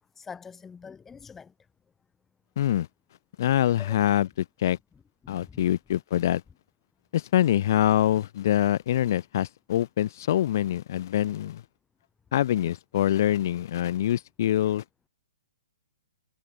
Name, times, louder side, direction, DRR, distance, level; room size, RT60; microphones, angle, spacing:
voice 1, 0.2-1.5 3.8-4.0 5.2-5.7, left 6 dB, 10° left, 0.6 m, -45 dB
voice 2, 2.6-2.9 3.4-4.8 5.3-6.4 7.1-11.6 12.3-14.8, left 12 dB, 55° left, 0.7 m, -25 dB
hypercardioid pair, 130°, 2 cm